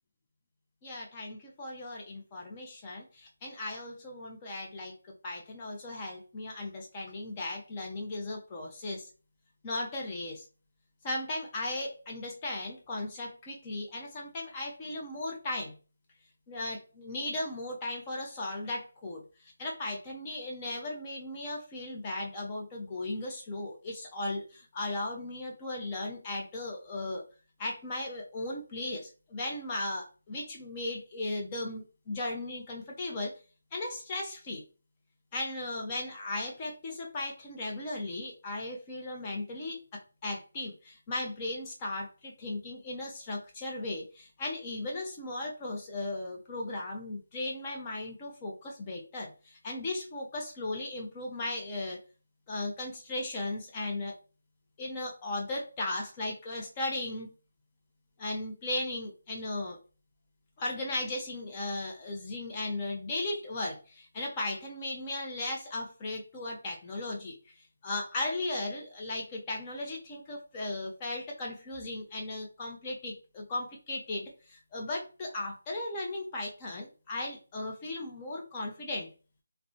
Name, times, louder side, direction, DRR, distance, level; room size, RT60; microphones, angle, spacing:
voice 1, 0.8-5.0 5.2-9.1 9.6-10.5 11.0-15.8 16.5-27.3 27.6-33.4 33.7-34.6 35.3-52.0 52.5-54.1 54.8-57.3 58.2-59.8 60.6-67.4 67.8-79.1, left 2 dB, 20° left, 0 dB, 0.5 m, -36 dB
2.6 x 2.1 x 2.6 m, 0.35 s
figure-of-eight pair, 170°, 0 cm